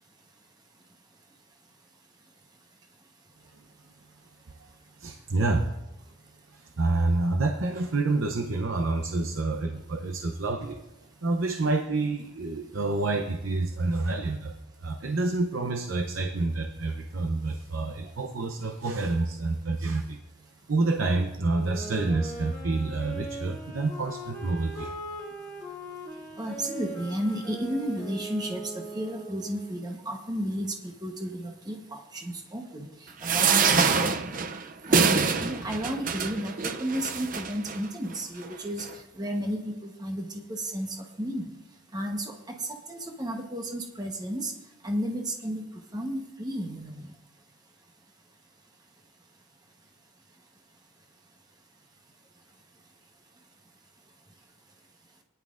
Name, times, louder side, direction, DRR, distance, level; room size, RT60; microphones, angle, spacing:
voice 1, 5.0-5.7 6.5-10.8 11.2-14.5 14.8-20.2 20.7-25.0, right 2 dB, 75° right, 6 dB, 0.7 m, -28 dB
Wind instrument woodwind instrument, 21.5-29.8, right 1 dB, 10° left, 2.5 m, -40 dB
voice 2, 26.4-32.9 33.2-34.4 34.9-38.9 39.1-41.5 41.9-42.3 42.6-44.5 44.8-45.6 45.9-47.1, equal, 20° right, 2 dB, 1.0 m, -33 dB
sound 1, 33.2-37.8 38.4-38.5 38.8-38.9, right 5 dB, 40° right, 0.5 m, -25 dB
18.5 x 10.5 x 2.5 m, 0.97 s
head